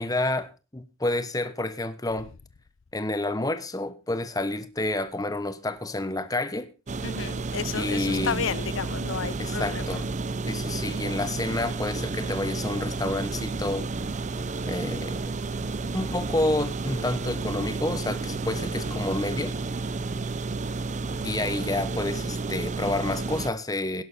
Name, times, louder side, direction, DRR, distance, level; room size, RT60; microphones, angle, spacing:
voice 1, 0.0-2.3 2.9-6.7 7.7-8.6 9.4-10.1 10.5-13.9 14.6-15.2 15.9-19.5 21.2-24.0, left 2 dB, 15° left, 1.1 m, -29 dB
sound 1, 6.9-23.5, right 3 dB, 35° right, 0.6 m, -31 dB
voice 2, 7.0-9.9, left 6 dB, 65° left, 0.6 m, -32 dB
17.5 x 10.5 x 4.2 m
head